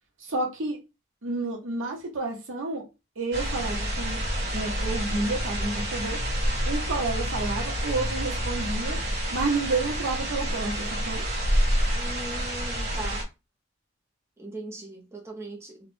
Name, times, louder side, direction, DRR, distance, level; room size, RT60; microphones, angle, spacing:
voice 1, 0.2-0.8 1.2-2.9 3.2-4.2 4.5-6.2 6.6-9.0 9.3-11.2, right 3 dB, 85° right, 1.0 m, -30 dB
sound 1, 3.3-13.2, equal, 50° right, 1.2 m, -28 dB
voice 2, 11.9-13.3 14.4-15.9, right 1 dB, 15° right, 0.4 m, -39 dB
2.5 x 2.0 x 3.2 m
head